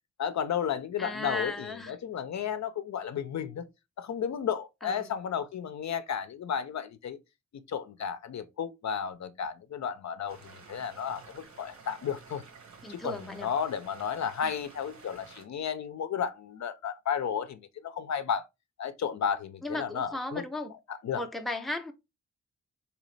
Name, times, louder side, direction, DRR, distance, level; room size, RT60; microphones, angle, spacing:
voice 1, 0.2-3.7 4.0-7.2 7.7-12.4 12.9-18.4 18.8-20.4 20.9-21.2, left 7 dB, 65° left, 0.5 m, -33 dB
voice 2, 1.0-2.0 4.8-5.1 12.8-13.5 14.4-14.5 19.6-20.7 21.1-21.9, left 2 dB, ahead, 0.5 m, -36 dB
sound 1, 10.3-15.5, right 5 dB, 65° right, 1.2 m, -52 dB
4.0 x 2.9 x 3.1 m
wide cardioid pair, 110°, 30 cm